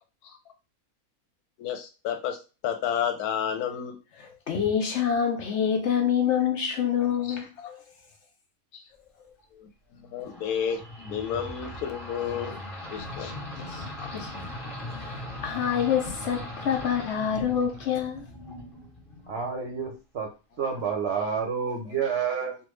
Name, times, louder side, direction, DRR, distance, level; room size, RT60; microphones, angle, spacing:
voice 1, 1.6-2.4 2.6-4.0 7.3-7.4 7.6-7.7 8.7-8.8 9.6-12.6 12.9-13.3 14.0-14.1, left 8 dB, 85° left, 1.2 m, -31 dB
voice 2, 4.2-7.8 13.6-13.8 14.1-14.5 15.0-18.2 22.0-22.2, left 8 dB, 65° left, 0.7 m, -27 dB
sound 1, 10.3-19.6, left 1 dB, 40° left, 1.3 m, -39 dB
voice 3, 19.3-20.3 20.6-22.6, right 6 dB, 55° right, 0.8 m, -29 dB
3.3 x 2.4 x 3.0 m
omnidirectional pair, 1.6 m